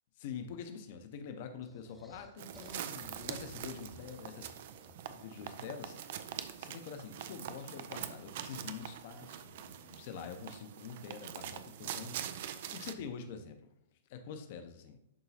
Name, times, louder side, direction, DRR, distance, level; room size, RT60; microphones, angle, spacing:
voice 1, 0.2-4.5 5.1-6.2 6.6-13.7 14.1-15.0, left 6 dB, 45° left, 7 dB, 0.8 m, -46 dB
sound 1, 1.6-5.2, left 1 dB, ahead, 0.7 m, -57 dB
sound 2, 2.4-12.9, right 10 dB, 50° right, 0.4 m, -44 dB
11.0 x 3.9 x 2.8 m, 0.83 s
figure-of-eight pair, 105°, 0 cm